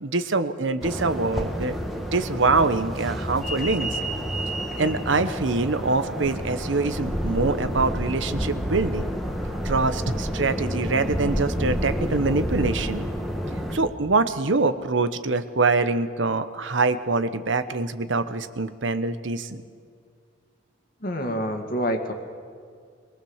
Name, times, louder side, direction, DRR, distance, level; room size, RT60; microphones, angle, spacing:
voice 1, 0.0-1.8 2.1-4.0 4.8-9.0 9.6-13.1 13.7-19.6, right 3 dB, 70° right, 11 dB, 1.0 m, -24 dB
sound 1, 0.8-13.8, equal, ahead, 1.8 m, -29 dB
voice 2, 21.0-22.1, equal, 45° left, 5 dB, 2.1 m, -27 dB
23.0 x 19.0 x 7.3 m, 2.1 s
head